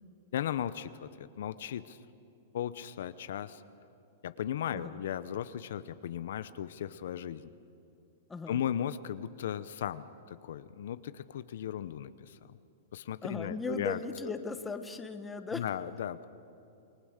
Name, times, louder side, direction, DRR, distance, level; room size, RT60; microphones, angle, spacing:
voice 1, 0.3-2.0 2.5-3.6 4.2-7.4 8.5-12.6 12.9-14.0 14.2-14.3 15.5-16.2, left 10 dB, 75° left, 13 dB, 0.8 m, -36 dB
voice 2, 8.3-8.6 13.2-15.6, left 3 dB, 10° left, 8 dB, 1.2 m, -38 dB
28.0 x 20.5 x 6.6 m, 2.8 s
hypercardioid pair, 145°, 0 cm